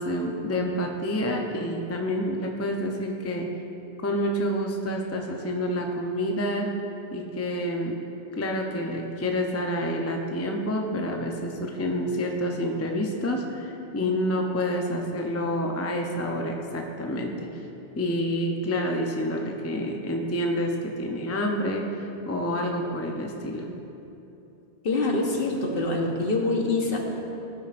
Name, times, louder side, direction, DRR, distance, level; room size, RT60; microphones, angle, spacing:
voice 1, 0.0-3.5 4.0-6.7 7.1-7.9 8.3-17.5 18.0-23.7, equal, 20° left, 1 dB, 0.5 m, -28 dB
voice 2, 24.8-27.0, left 2 dB, 60° left, 0 dB, 1.3 m, -25 dB
15.5 x 9.1 x 2.5 m, 2.9 s
omnidirectional pair, 1.1 m